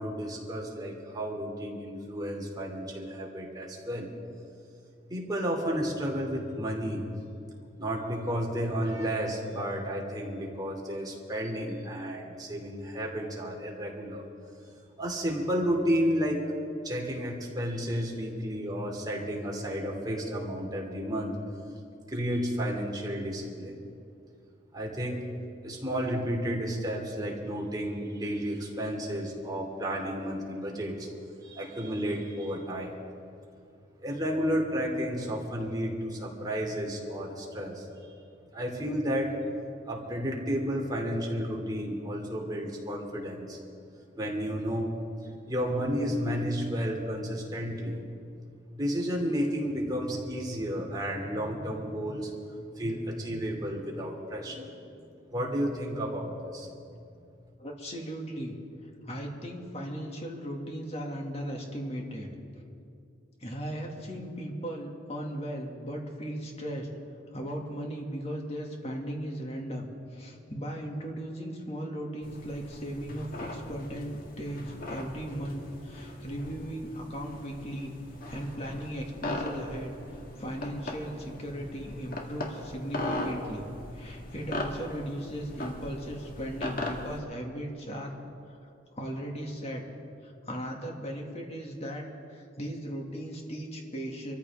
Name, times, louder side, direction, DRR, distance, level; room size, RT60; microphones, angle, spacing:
voice 1, 0.0-4.1 5.1-7.1 7.8-14.2 15.0-16.5 16.8-21.4 22.1-23.8 24.7-25.2 25.6-31.1 31.4-32.9 34.0-37.9 38.5-39.3 39.9-43.6 44.2-44.9 45.5-48.0 48.8-54.9 55.3-56.7, equal, 25° right, -1 dB, 2.8 m, -32 dB
voice 2, 57.6-58.6 59.0-62.3 63.4-66.9 67.3-77.9 78.3-83.7 83.9-88.1 88.6-89.8 90.2-94.3, equal, 35° left, 0 dB, 2.3 m, -37 dB
sound 1, 72.2-87.2, left 1 dB, 55° left, 1.8 m, -39 dB
25.5 x 14.0 x 3.6 m, 2.5 s
head